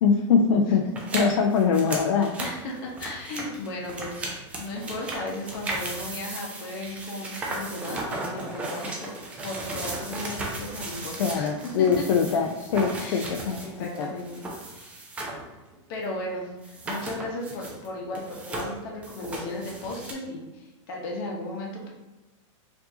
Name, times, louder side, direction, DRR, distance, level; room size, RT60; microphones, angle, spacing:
voice 1, 0.0-0.8 1.1-2.3 11.2-14.1, left 6 dB, 80° left, 3 dB, 0.4 m, -23 dB
sound 1, 0.9-15.5 15.7-15.8 16.6-17.9 18.1-20.1, right 2 dB, 10° right, 0.3 m, -36 dB
voice 2, 2.4-9.1 9.4-12.1 13.0-14.5 14.7-15.0 15.9-21.9, left 1 dB, 45° left, -1 dB, 0.9 m, -36 dB
4.5 x 2.7 x 2.7 m, 1.1 s
supercardioid pair, 165°, 16 cm